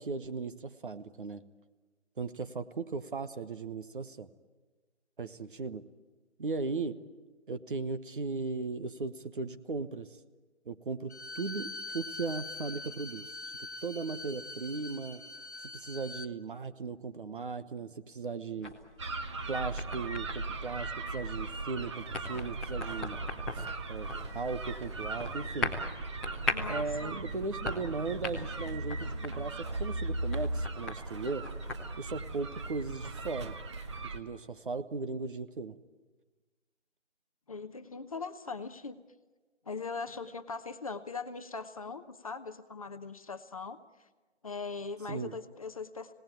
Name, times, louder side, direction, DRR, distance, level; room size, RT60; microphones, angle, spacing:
voice 1, 0.0-1.4 2.2-4.3 5.2-5.8 6.4-7.0 7.5-10.1 10.6-15.2 15.6-18.7 19.5-23.2 23.6-25.7 26.7-31.5 32.0-33.6 34.0-35.8 45.1-45.4, right 4 dB, 50° right, 10 dB, 1.2 m, -37 dB
Bowed string instrument, 11.1-16.3, left 2 dB, 70° left, 1.4 m, -43 dB
sound 1, 18.6-31.9, left 2 dB, ahead, 0.9 m, -41 dB
sound 2, 19.0-34.2, right 2 dB, 25° right, 1.1 m, -38 dB
voice 2, 26.5-27.2 37.5-39.0 39.7-43.8 44.4-46.1, left 4 dB, 30° left, 9 dB, 0.8 m, -40 dB
27.0 x 18.5 x 9.1 m, 1.3 s
figure-of-eight pair, 150°, 35 cm